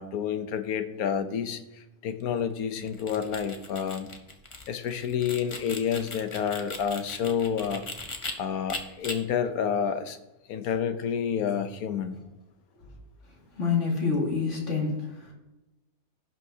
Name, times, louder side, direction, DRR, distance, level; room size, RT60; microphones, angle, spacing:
voice 1, 0.0-1.6 2.0-4.1 4.7-7.8 8.4-10.2 10.5-12.2, left 7 dB, 75° left, 9 dB, 1.2 m, -29 dB
sound 1, 2.8-8.3 8.7-9.1, left 2 dB, 25° left, 0.7 m, -38 dB
voice 2, 13.5-15.3, left 5 dB, 50° left, -3 dB, 2.5 m, -27 dB
16.0 x 5.6 x 2.8 m, 1.0 s
omnidirectional pair, 1.6 m